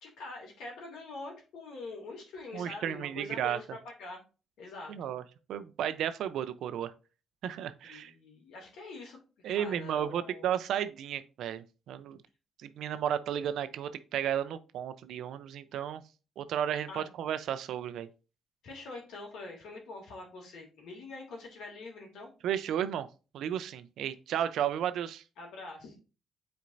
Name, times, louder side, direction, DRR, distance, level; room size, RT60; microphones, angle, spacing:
voice 1, 0.0-4.2 4.6-5.1 7.8-9.2 9.5-10.4 16.9-17.1 18.6-22.3 25.4-26.0, left 3 dB, 80° left, 2.4 m, -44 dB
voice 2, 2.5-3.6 4.9-5.2 5.5-6.9 7.4-8.1 9.4-12.2 12.6-16.0 16.4-18.1 22.4-23.1 23.3-25.2, right 10 dB, 80° right, 0.6 m, -33 dB
8.3 x 4.4 x 2.6 m
cardioid pair, 90°, 0 cm